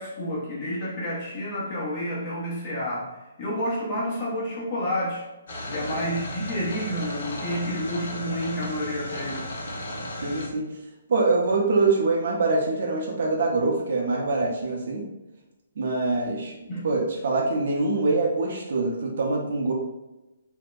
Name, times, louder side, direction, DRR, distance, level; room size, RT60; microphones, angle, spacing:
voice 1, 0.0-3.1 3.4-5.2 5.7-9.4 16.7-16.9, equal, 35° left, -5 dB, 0.9 m, -29 dB
sound 1, 5.5-10.5, left 1 dB, 60° left, 0.7 m, -35 dB
voice 2, 10.2-10.7 11.1-15.0 15.8-16.6 16.8-19.7, right 3 dB, 60° right, 0 dB, 0.6 m, -24 dB
2.7 x 2.1 x 2.3 m, 1.0 s
hypercardioid pair, 140°, 0 cm